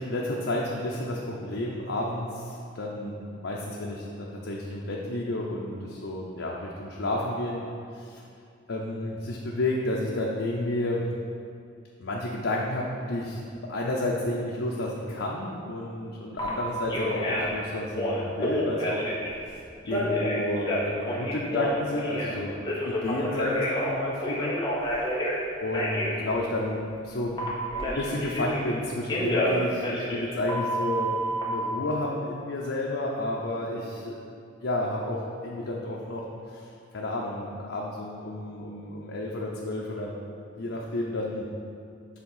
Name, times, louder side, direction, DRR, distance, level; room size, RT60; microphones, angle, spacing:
voice 1, 0.0-3.1 3.4-7.7 7.9-8.2 8.7-11.0 12.0-19.0 19.8-24.5 25.6-27.3 28.0-31.1 31.4-34.2 34.6-36.7 36.9-40.1 40.5-41.5, left 1 dB, 85° left, -3 dB, 0.7 m, -31 dB
Telephone, 16.4-16.5 16.9-17.5 17.9-19.3 19.9-22.3 22.6-25.4 25.7-26.1 27.4-28.7 29.1-31.4, equal, 25° left, 1.1 m, -29 dB
7.4 x 3.5 x 5.6 m, 2.4 s
head